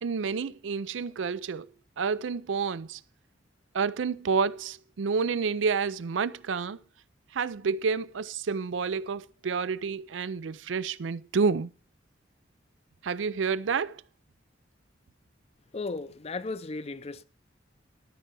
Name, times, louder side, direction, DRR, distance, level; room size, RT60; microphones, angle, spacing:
voice 1, 0.0-1.7 2.0-3.0 3.7-6.8 7.3-11.7 13.0-14.0, right 5 dB, 85° right, 0.5 m, -29 dB
voice 2, 15.7-17.2, left 3 dB, 35° left, 0.5 m, -35 dB
12.5 x 4.7 x 7.5 m
head